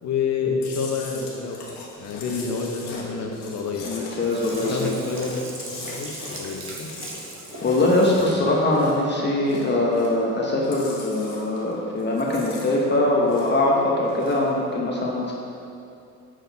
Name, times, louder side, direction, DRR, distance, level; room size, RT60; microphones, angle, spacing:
voice 1, 0.0-1.6 2.0-3.9 4.6-6.9, left 5 dB, 55° left, 1 dB, 1.1 m, -28 dB
Chewing mastication, 0.6-9.1 9.4-10.3 10.6-11.7 12.0-13.7 14.0-14.5, left 3 dB, 90° left, 1.4 m, -40 dB
voice 2, 3.9-4.9 7.6-15.3, left 2 dB, 30° left, -3 dB, 1.1 m, -22 dB
Sink (filling or washing), 4.2-8.4 8.9-9.0, right 2 dB, 40° right, 1.2 m, -39 dB
6.4 x 6.2 x 4.1 m, 2.6 s
cardioid pair, 105°, 33 cm